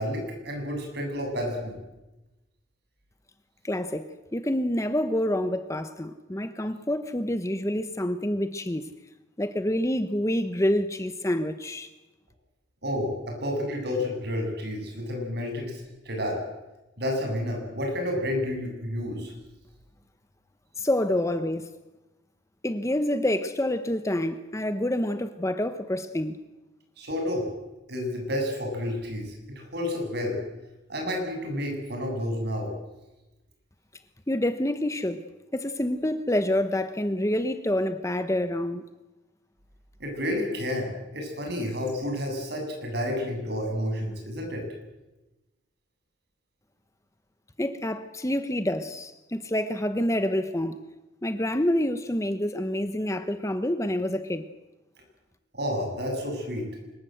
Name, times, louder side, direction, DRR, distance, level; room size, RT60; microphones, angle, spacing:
voice 1, 0.0-1.8 12.8-15.7 16.0-16.4 17.0-19.3 27.0-27.5 27.9-30.4 30.9-32.7 40.0-44.7 55.5-56.7, left 1 dB, 55° right, 8.0 m, -30 dB
voice 2, 3.6-8.9 9.4-11.9 20.8-21.7 22.6-26.4 34.3-35.2 35.5-38.9 47.6-50.8 51.2-54.5, left 1 dB, 15° left, 1.0 m, -27 dB
25.0 x 22.0 x 8.0 m
head